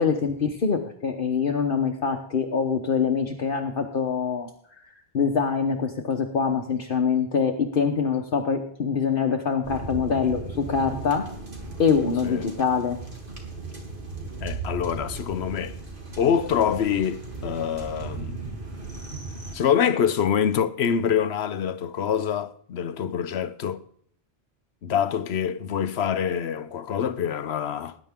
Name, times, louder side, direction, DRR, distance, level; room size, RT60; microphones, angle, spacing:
voice 1, 0.0-4.5 4.8-11.3 11.8-13.0, left 6 dB, 60° left, 1.2 m, -24 dB
sound 1, 9.6-19.6, right 3 dB, 55° right, 3.0 m, -37 dB
voice 2, 12.2-12.5 14.4-15.8 16.2-18.5 19.5-23.8 24.8-28.0, left 8 dB, 90° left, 1.1 m, -25 dB
19.0 x 10.5 x 3.7 m
omnidirectional pair, 1.0 m